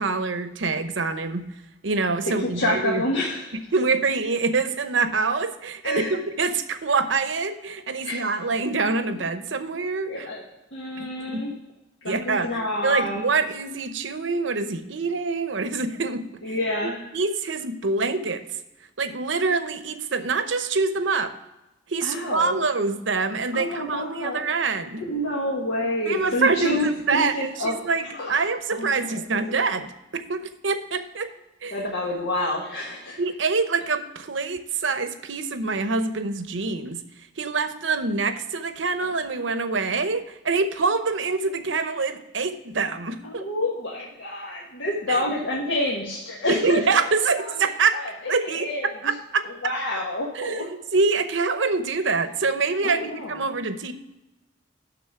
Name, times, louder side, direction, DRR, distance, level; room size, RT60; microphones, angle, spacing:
voice 1, 0.0-1.5 1.8-3.0 3.5-10.3 11.0-11.5 12.0-16.3 17.1-18.5 19.0-21.3 21.9-25.0 26.1-31.3 31.6-31.8 33.2-37.0 37.4-43.5 45.1-45.2 46.5-48.0 48.3-49.5 50.3-53.9, right 4 dB, 75° right, 10 dB, 0.8 m, -25 dB
voice 2, 2.2-3.5 5.8-6.2 8.0-8.3 10.1-10.4 10.7-11.6 12.0-13.3 16.4-17.1 22.0-22.6 23.5-24.5 25.0-29.4 31.7-33.2 43.2-46.8 47.4-49.1 49.4-50.7 52.8-53.4, left 1 dB, 75° left, -3 dB, 1.5 m, -28 dB
12.0 x 4.1 x 5.9 m, 0.98 s
head